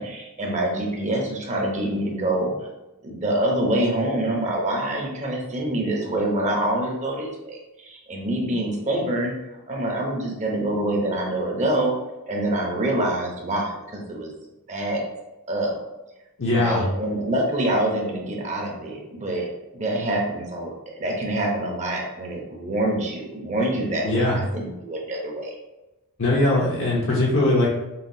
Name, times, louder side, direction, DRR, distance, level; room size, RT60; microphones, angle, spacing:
voice 1, 0.0-2.7 3.0-9.3 9.7-11.9 12.3-14.3 14.7-15.0 15.5-15.8 16.5-19.5 19.7-25.5, right 1 dB, 30° right, 0 dB, 0.8 m, -26 dB
voice 2, 16.4-16.8 24.0-24.4 26.2-27.7, left 2 dB, 60° left, -6 dB, 0.8 m, -20 dB
5.6 x 2.3 x 2.7 m, 0.99 s
head